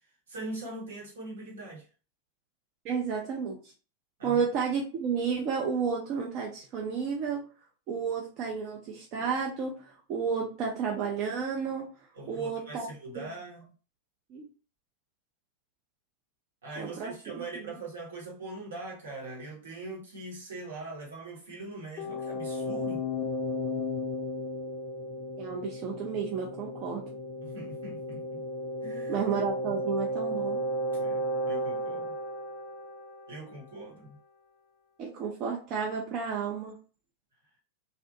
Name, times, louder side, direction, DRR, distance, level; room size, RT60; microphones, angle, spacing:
voice 1, 0.3-1.8 4.2-4.4 12.1-13.7 16.6-23.1 27.4-28.4 28.8-29.3 30.9-32.1 33.3-34.2, right 2 dB, 65° right, 0.9 m, -42 dB
voice 2, 2.8-3.7 4.2-7.4 7.9-11.9 12.3-12.9 14.3-14.4 16.8-17.7 25.4-27.1 29.1-30.6 35.0-36.8, right 6 dB, 40° right, 0.5 m, -32 dB
sound 1, 22.0-33.6, equal, 25° left, 0.4 m, -34 dB
2.6 x 2.1 x 2.6 m
figure-of-eight pair, 90°, 0 cm